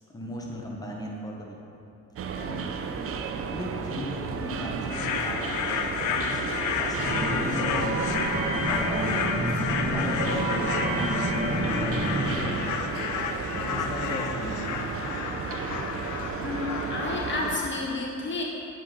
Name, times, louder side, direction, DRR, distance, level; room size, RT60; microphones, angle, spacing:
voice 1, 0.1-1.6 2.4-2.7 3.1-5.7 6.0-6.4 6.8-7.9 8.7-9.6 9.9-12.7 13.5-14.7, left 1 dB, 10° left, -2 dB, 0.9 m, -37 dB
sound 1, 2.2-17.6, right 6 dB, 50° right, 0.5 m, -33 dB
sound 2, 4.9-17.7, left 7 dB, 80° left, 0.5 m, -31 dB
sound 3, 7.0-12.4, right 1 dB, 30° right, 1.2 m, -29 dB
voice 2, 16.4-18.4, left 2 dB, 40° left, -2 dB, 0.8 m, -31 dB
7.2 x 4.7 x 3.7 m, 2.8 s
cardioid pair, 90°, 30 cm